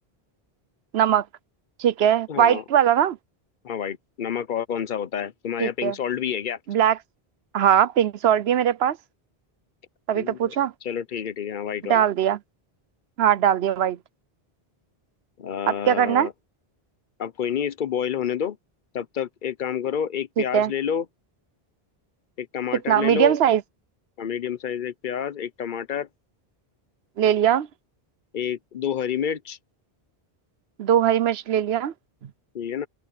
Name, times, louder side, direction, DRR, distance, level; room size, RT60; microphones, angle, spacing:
voice 1, 0.9-1.2 1.8-3.2 5.6-5.9 6.7-7.0 7.5-9.0 10.1-10.7 11.9-12.4 13.2-14.0 15.7-16.3 20.4-20.7 22.7-23.6 27.2-27.7 30.8-31.9, right 10 dB, 85° right, 1.0 m, -20 dB
voice 2, 2.3-2.6 3.6-6.6 10.1-10.6 10.8-12.1 15.4-16.3 17.2-18.6 18.9-21.0 22.4-23.4 24.2-26.1 28.3-29.6 32.5-32.9, left 8 dB, 55° left, 0.9 m, -29 dB
omnidirectional pair, 1.0 m